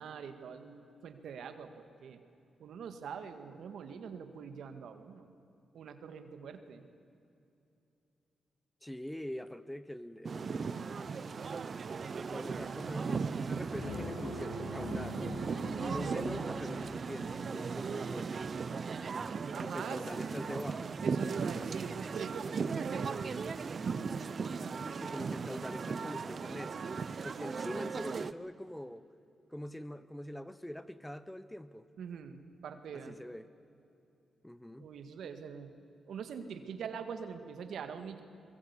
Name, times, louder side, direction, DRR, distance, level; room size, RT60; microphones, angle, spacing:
voice 1, 0.0-2.2 2.6-5.3 5.7-6.8 15.8-16.2 19.5-20.0 21.0-23.2 32.0-33.2 34.8-35.7 36.1-38.2, right 7 dB, 75° right, 8 dB, 1.9 m, -43 dB
voice 2, 8.8-10.9 12.2-15.2 15.8-18.3 19.6-21.0 24.5-26.9 27.2-29.1 29.5-31.9 32.9-33.5 34.4-34.9, equal, 5° left, 14 dB, 1.1 m, -44 dB
sound 1, 10.3-28.3, right 5 dB, 50° right, 0.8 m, -37 dB
sound 2, 13.7-17.3, left 2 dB, 80° left, 2.4 m, -44 dB
23.0 x 21.5 x 8.4 m, 2.7 s
cardioid pair, 60°, 0 cm